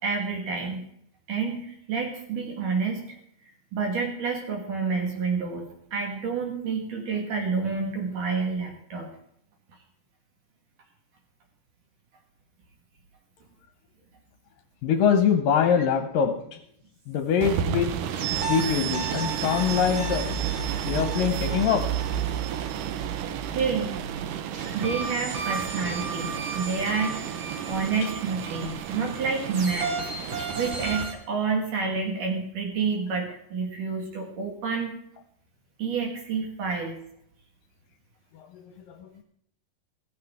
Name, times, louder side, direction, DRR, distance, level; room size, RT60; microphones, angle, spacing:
voice 1, 0.0-0.8 1.3-3.0 3.7-5.6 5.9-9.1 23.5-24.0 24.7-27.2 27.7-29.9 30.6-34.9 35.8-37.0, right 5 dB, 60° right, 2 dB, 2.9 m, -29 dB
voice 2, 14.8-16.6 17.1-17.9 18.5-20.3 20.8-21.9 28.0-28.1 30.4-30.5 38.3-39.2, left 7 dB, 70° left, 8 dB, 2.2 m, -24 dB
sound 1, 17.4-31.0, right 8 dB, 75° right, 2.0 m, -32 dB
sound 2, 18.1-23.7 24.5-31.1, right 5 dB, 40° right, 2.1 m, -35 dB
15.5 x 15.0 x 3.6 m, 0.71 s
omnidirectional pair, 4.7 m